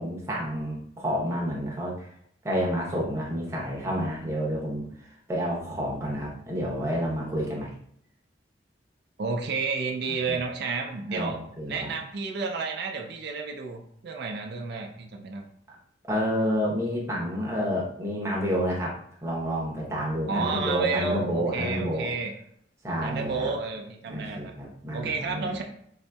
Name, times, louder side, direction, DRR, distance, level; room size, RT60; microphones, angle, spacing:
voice 1, 0.0-2.1 2.4-7.7 10.3-10.4 11.1-11.9 16.1-19.0 19.2-22.1 22.8-23.5 24.1-25.5, equal, 15° right, -3 dB, 0.8 m, -29 dB
voice 2, 9.2-11.4 11.7-15.5 20.3-22.3 23.0-24.5 24.9-25.6, right 4 dB, 60° right, 2 dB, 0.4 m, -31 dB
4.0 x 2.6 x 2.2 m, 0.67 s
head